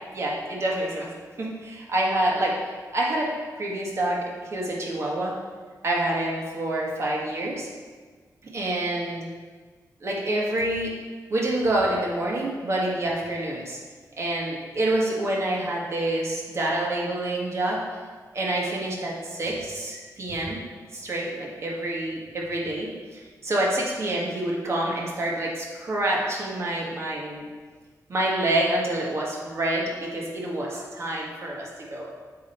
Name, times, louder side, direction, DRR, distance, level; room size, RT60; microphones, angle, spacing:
voice 1, 0.1-1.1 1.4-2.6 2.9-3.3 3.6-5.4 5.8-7.7 8.4-9.3 10.0-10.9 11.3-13.8 14.2-17.8 18.3-20.6 20.9-27.4 28.1-32.1, right 1 dB, 45° right, -3 dB, 1.6 m, -27 dB
7.4 x 5.6 x 4.3 m, 1.5 s
wide cardioid pair, 130°, 7 cm